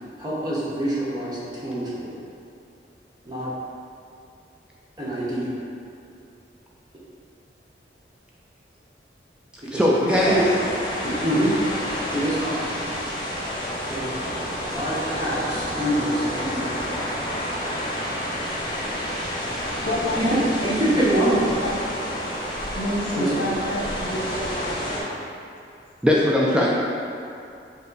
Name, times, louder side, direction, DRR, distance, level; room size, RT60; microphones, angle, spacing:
voice 1, 0.2-2.1 3.2-3.5 5.0-5.5 9.7-10.4 11.0-11.5 12.1-12.5 13.9-14.1 14.7-16.7 18.8-19.1 20.2-21.5 23.2-23.3, right 1 dB, 25° right, -8 dB, 0.9 m, -25 dB
voice 2, 9.7-10.4 26.0-26.7, left 1 dB, 5° right, -5 dB, 0.3 m, -19 dB
sound 1, 10.1-25.0, equal, 25° left, 0.8 m, -29 dB
voice 3, 19.5-21.8 22.7-25.2, equal, 90° left, -6 dB, 1.0 m, -29 dB
5.5 x 2.1 x 3.9 m, 2.5 s
head